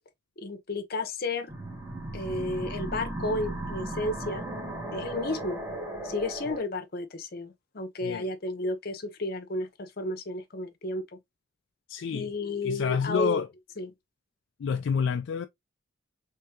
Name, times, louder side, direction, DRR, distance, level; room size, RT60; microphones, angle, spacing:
voice 1, 0.4-1.5 2.1-4.4 4.9-5.6 6.0-11.2 12.1-13.4 13.8-13.9, left 2 dB, 50° left, 0.8 m, -32 dB
sound 1, 1.5-6.6, right 1 dB, 10° right, 1.4 m, -36 dB
voice 2, 11.9-12.3 12.6-13.5 14.6-15.5, left 6 dB, 70° left, 0.3 m, -28 dB
3.5 x 3.3 x 2.8 m
head